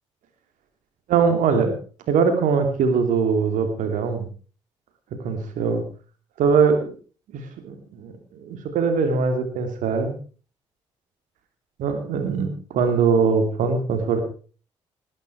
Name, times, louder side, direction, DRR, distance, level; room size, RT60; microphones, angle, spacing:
voice 1, 1.1-1.7 2.1-4.3 5.2-5.8 6.4-6.9 7.3-10.2 11.8-14.2, right 5 dB, 60° right, 7 dB, 3.0 m, -22 dB
19.0 x 10.5 x 4.7 m, 0.39 s
figure-of-eight pair, 40°, 15 cm